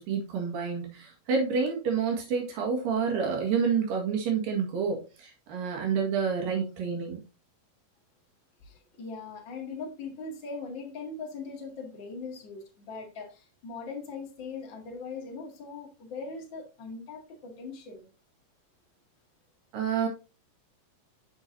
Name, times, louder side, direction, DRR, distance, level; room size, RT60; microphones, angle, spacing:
voice 1, 0.0-7.2 19.7-20.1, right 6 dB, 75° right, 0 dB, 3.6 m, -28 dB
voice 2, 8.6-18.1, left 4 dB, 40° left, 0 dB, 2.3 m, -40 dB
8.2 x 6.2 x 2.7 m, 0.31 s
omnidirectional pair, 4.0 m